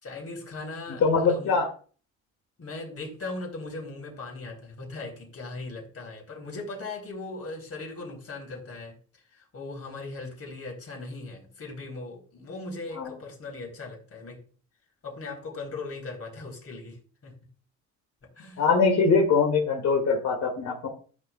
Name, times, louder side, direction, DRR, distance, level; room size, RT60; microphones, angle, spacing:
voice 1, 0.0-1.6 2.6-9.0 9.3-14.4 15.0-17.0 17.2-17.4 18.4-18.6, left 3 dB, 50° left, 1 dB, 4.0 m, -39 dB
voice 2, 1.0-1.7 12.9-13.1 18.6-20.9, left 4 dB, 70° left, -2 dB, 2.4 m, -22 dB
13.5 x 6.9 x 2.4 m, 0.41 s
cardioid pair, 90°, 30 cm